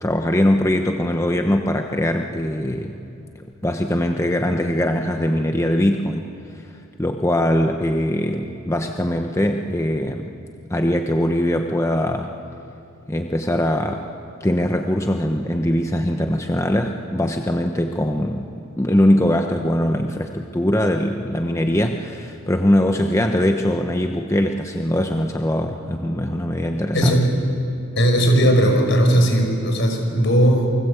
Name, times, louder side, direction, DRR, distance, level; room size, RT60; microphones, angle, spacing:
voice 1, 0.0-3.0 3.6-6.3 7.0-10.3 10.7-12.3 13.1-14.0 14.4-18.5 18.8-27.2, left 1 dB, 15° left, 4 dB, 0.9 m, -21 dB
voice 2, 26.9-27.3 28.0-30.7, equal, 60° left, 3 dB, 5.5 m, -17 dB
29.0 x 23.0 x 8.3 m, 2.6 s
head